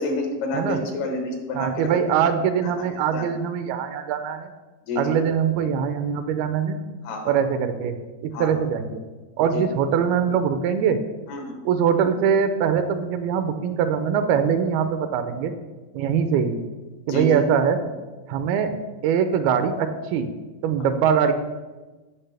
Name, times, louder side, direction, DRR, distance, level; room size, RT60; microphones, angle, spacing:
voice 1, 0.0-1.9 2.6-2.7 3.1-3.3 4.9-5.2 7.0-7.4 8.3-8.5 9.5-9.6 11.3-11.6 17.1-17.4, left 2 dB, 85° left, 3 dB, 3.3 m, -28 dB
voice 2, 1.5-4.5 5.0-6.8 7.3-8.0 8.2-9.0 9.4-11.0 11.7-15.5 15.9-16.6 17.1-17.9 18.3-18.7 19.0-20.3 20.6-21.3, right 7 dB, 85° right, 9 dB, 2.5 m, -22 dB
15.5 x 5.5 x 3.3 m, 1.2 s
omnidirectional pair, 4.4 m